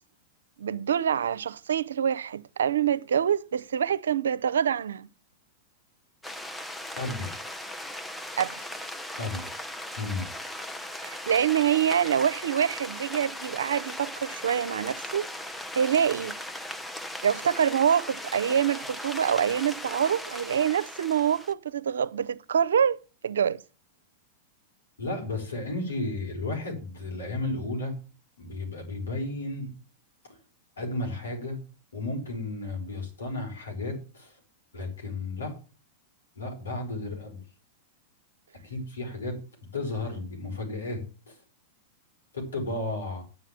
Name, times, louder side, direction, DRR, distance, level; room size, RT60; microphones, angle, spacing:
voice 1, 0.6-5.1 8.4-8.6 11.0-15.3 15.7-16.4 17.2-23.6, right 8 dB, 80° right, 0.6 m, -26 dB
sound 1, 6.2-21.5, left 1 dB, 5° left, 0.8 m, -38 dB
voice 2, 7.0-7.4 9.2-9.5 10.0-10.3 25.0-27.9 28.4-29.7 30.3-30.4 30.8-31.6 31.9-34.3 34.7-35.6 36.3-37.4 38.6-39.4 39.7-41.0 41.3-41.4 42.3-43.2, left 2 dB, 90° left, 5.1 m, -33 dB
9.6 x 5.9 x 7.5 m
hypercardioid pair, 110°, 0 cm